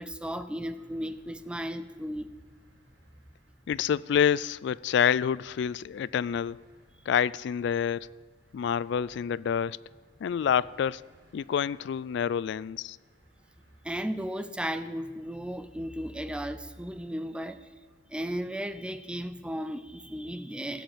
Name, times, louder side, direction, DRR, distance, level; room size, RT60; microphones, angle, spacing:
voice 1, 0.0-2.4 13.8-17.7 18.1-20.8, equal, 5° right, 0.5 m, -35 dB
sound 1, 0.7-19.1, equal, 75° right, 5.3 m, -62 dB
voice 2, 3.7-6.6 7.1-8.1 8.5-9.8 10.2-11.0 11.3-13.0, left 8 dB, 65° left, 0.3 m, -27 dB
16.0 x 7.9 x 8.9 m
head